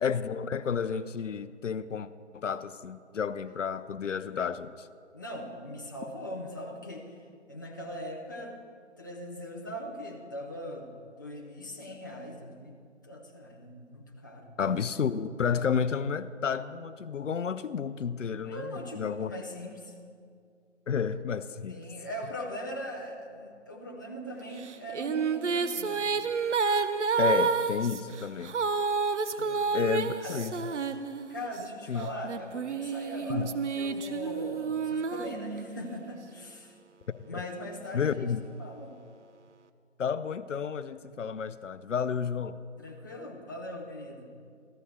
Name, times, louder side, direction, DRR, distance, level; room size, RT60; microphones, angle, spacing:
voice 1, 0.0-4.9 14.6-19.3 20.9-21.8 27.2-28.6 29.7-30.7 31.9-32.1 33.3-33.5 37.1-37.4 37.9-38.4 40.0-42.6, left 6 dB, 80° left, 14 dB, 0.6 m, -31 dB
voice 2, 5.1-7.2 7.5-8.6 9.0-12.7 13.0-14.5 18.5-19.9 21.7-26.2 29.3-29.8 30.2-30.7 31.3-36.8 37.2-38.3 38.6-39.0 42.8-44.3, equal, 15° left, -1 dB, 0.5 m, -40 dB
sound 1, 24.6-31.6 32.2-36.0, right 5 dB, 70° right, 0.7 m, -30 dB
14.0 x 13.5 x 3.2 m, 2.2 s
figure-of-eight pair, 155°, 37 cm